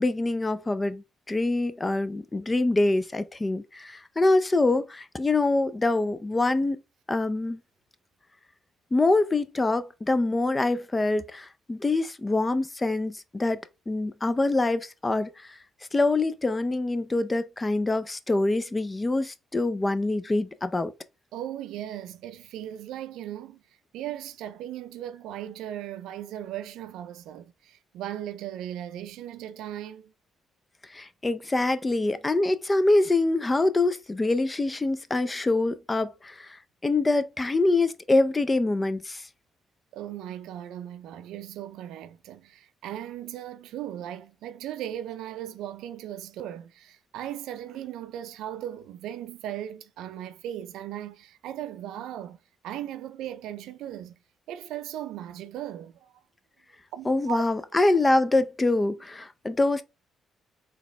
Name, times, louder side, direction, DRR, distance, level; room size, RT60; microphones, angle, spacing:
voice 1, 0.0-6.8 7.1-7.6 8.9-15.6 15.9-20.9 30.9-36.5 36.8-39.2 57.1-59.8, left 2 dB, 20° left, 0.5 m, -25 dB
voice 2, 21.3-23.6 23.9-30.1 39.9-52.4 52.6-54.2 54.5-56.2 56.9-57.4, right 11 dB, 90° right, 0.4 m, -37 dB
4.0 x 2.9 x 3.3 m
cardioid pair, 90°, 0 cm